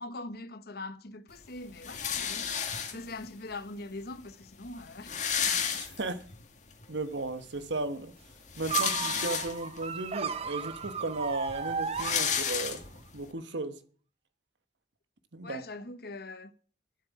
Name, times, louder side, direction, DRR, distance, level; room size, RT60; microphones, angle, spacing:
voice 1, 0.0-5.2 15.4-16.5, left 2 dB, 60° left, 1.1 m, -42 dB
sound 1, 1.8-3.3 4.1-4.2 4.4-4.5 4.8-6.4 6.8-6.9 8.3-9.8 10.5-10.6 10.8-13.2, left 7 dB, 40° left, 1.7 m, -32 dB
voice 2, 5.4-6.3 6.9-8.1 8.6-12.8 13.1-13.8 15.3-15.6, right 2 dB, 80° right, 1.4 m, -35 dB
sound 2, 8.7-12.8, right 6 dB, 35° right, 0.8 m, -35 dB
11.0 x 8.0 x 8.3 m
head